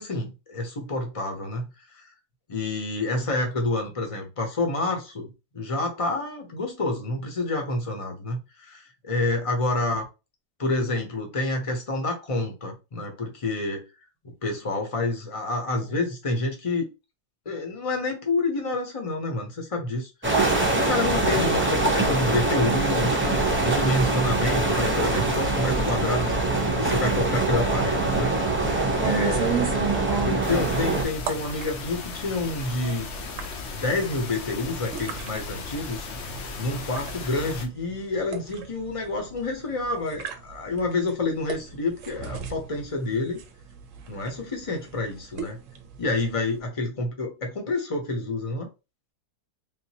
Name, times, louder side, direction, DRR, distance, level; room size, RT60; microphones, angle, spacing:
voice 1, 0.0-2.1 2.5-10.0 10.6-13.8 14.2-16.9 17.5-20.4 20.7-23.2 23.6-28.3 29.0-29.8 30.3-33.1 33.7-36.1 36.6-43.4 44.1-45.6 46.0-48.7, left 2 dB, 30° left, 0.7 m, -28 dB
Roaring Ocean, 20.2-31.0, right 2 dB, 20° right, 0.3 m, -24 dB
sound 1, 29.0-46.6, right 6 dB, 65° right, 0.9 m, -35 dB
sound 2, 30.4-37.7, left 4 dB, 60° left, 0.8 m, -36 dB
3.6 x 2.5 x 2.8 m
omnidirectional pair, 1.7 m